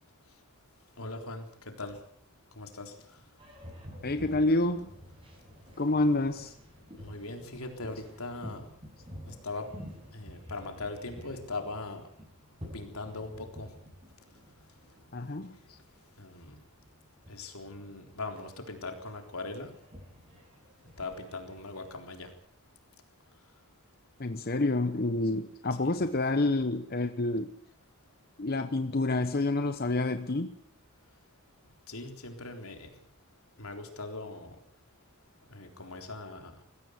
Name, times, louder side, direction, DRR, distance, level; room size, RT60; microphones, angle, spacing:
voice 1, 1.0-2.0 2.6-3.2 7.0-8.7 9.3-9.7 10.1-12.0 12.7-13.7 16.2-16.6 17.3-19.7 21.0-22.3 25.8-26.0 31.9-32.9 33.6-34.6 35.5-36.5, left 3 dB, 80° left, 4 dB, 3.8 m, -40 dB
Boat Water vehicle, 3.4-22.4, equal, 25° right, 7.6 m, -50 dB
voice 2, 4.0-4.9 5.8-6.5 15.1-15.8 24.2-27.5 28.4-30.5, left 2 dB, 45° left, 9 dB, 1.0 m, -28 dB
21.5 x 15.5 x 8.1 m, 0.67 s
head